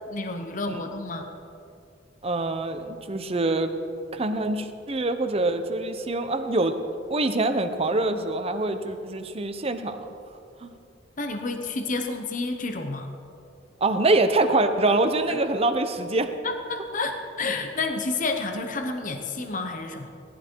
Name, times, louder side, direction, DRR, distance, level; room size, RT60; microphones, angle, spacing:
voice 1, 0.1-1.3 11.2-13.1 15.3-15.4 16.4-20.1, left 3 dB, 45° left, 5 dB, 1.0 m, -30 dB
voice 2, 2.2-3.7 4.1-6.8 7.1-10.1 10.6-10.7 13.8-16.3, right 2 dB, 35° right, 7 dB, 0.9 m, -25 dB
18.0 x 12.0 x 4.7 m, 2.6 s
head